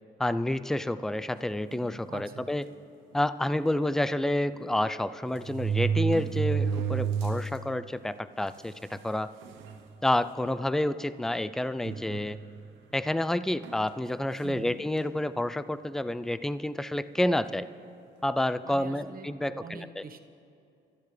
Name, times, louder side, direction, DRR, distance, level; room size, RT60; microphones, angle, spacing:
voice 1, 0.2-2.6 3.1-9.3 10.0-12.4 12.9-17.7 18.2-20.0, left 1 dB, ahead, 14 dB, 0.4 m, -29 dB
sound 1, 1.7-2.0 2.7-2.8 3.1-3.2 4.5-4.6 5.3-7.6 8.0-8.1 8.9-9.0 9.4-9.8 10.4-10.6 11.8-12.7 13.6-13.9, right 6 dB, 85° right, 0.9 m, -30 dB
voice 2, 2.1-2.5 14.4-14.8 18.6-20.2, right 5 dB, 50° right, 6 dB, 1.0 m, -44 dB
26.5 x 12.0 x 3.3 m, 2.7 s
cardioid pair, 90°, 19 cm